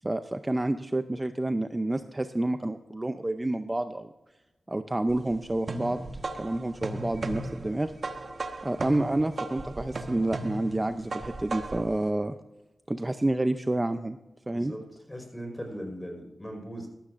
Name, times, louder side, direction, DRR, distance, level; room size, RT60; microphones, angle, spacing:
voice 1, 0.0-4.1 4.7-6.1 6.4-7.9 8.6-12.3 12.9-14.2 14.5-14.7, right 1 dB, 20° right, 9 dB, 0.5 m, -29 dB
sound 1, 5.1-11.9, right 2 dB, 55° right, 1.1 m, -36 dB
voice 2, 14.5-16.9, equal, 15° left, 2 dB, 4.7 m, -39 dB
15.0 x 13.0 x 2.5 m, 1.0 s
cardioid pair, 65°, 0 cm